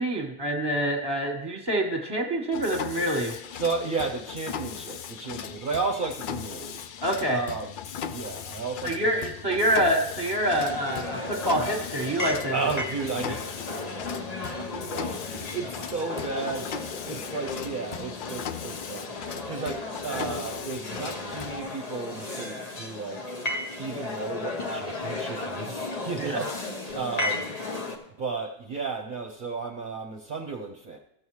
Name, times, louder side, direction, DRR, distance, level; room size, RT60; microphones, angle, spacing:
voice 1, 0.0-3.3 7.0-7.4 8.8-12.5 13.3-13.4 14.4-14.6 26.2-26.4, right 1 dB, 25° right, 3 dB, 1.4 m, -26 dB
Mechanisms, 2.5-21.6, left 8 dB, 60° left, 0.7 m, -38 dB
voice 2, 3.5-6.8 7.3-7.8 8.1-9.2 12.5-14.0 14.6-23.3 23.8-27.5 28.2-31.0, right 4 dB, 55° right, 2 dB, 0.9 m, -33 dB
sound 1, 10.4-28.0, left 2 dB, 40° left, 1.1 m, -35 dB
15.0 x 7.2 x 3.2 m, 0.80 s
omnidirectional pair, 1.0 m